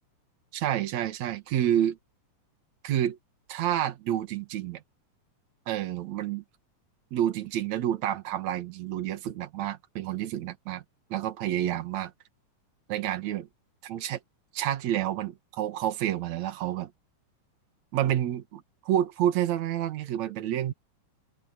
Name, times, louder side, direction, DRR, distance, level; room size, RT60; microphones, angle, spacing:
voice 1, 0.5-2.0 2.8-3.2 3.5-4.8 5.7-6.4 7.1-10.8 11.1-12.1 12.9-13.5 13.8-14.2 14.5-16.9 17.9-20.7, right 11 dB, 60° right, 2.7 m, -29 dB
omnidirectional pair, 3.8 m